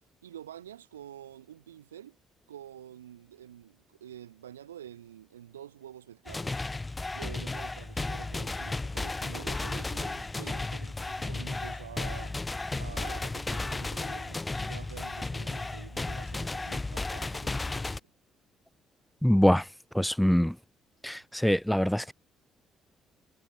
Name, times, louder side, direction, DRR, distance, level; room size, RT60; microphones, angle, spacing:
voice 1, 0.2-2.2 2.5-6.6 7.1-12.4 12.8-18.1, right 10 dB, 85° right, 1.3 m, -48 dB
sound 1, 6.3-18.0, left 2 dB, 20° left, 0.9 m, -34 dB
voice 2, 19.2-19.6 19.9-20.5 21.0-22.1, equal, 5° left, 0.5 m, -24 dB
hypercardioid pair, 45°, 0 cm